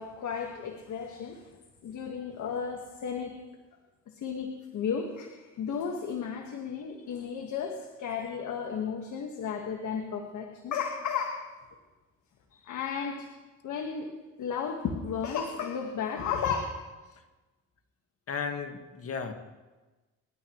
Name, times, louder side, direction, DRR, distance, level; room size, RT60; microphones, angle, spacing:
voice 1, 0.0-1.5 1.8-3.4 4.1-11.4 12.6-13.3 13.6-14.1 14.4-16.6, left 6 dB, 75° left, 2 dB, 1.7 m, -34 dB
voice 2, 18.3-19.3, left 5 dB, 50° left, 5 dB, 1.8 m, -35 dB
28.0 x 11.5 x 3.2 m, 1.2 s
cardioid pair, 90°, 30 cm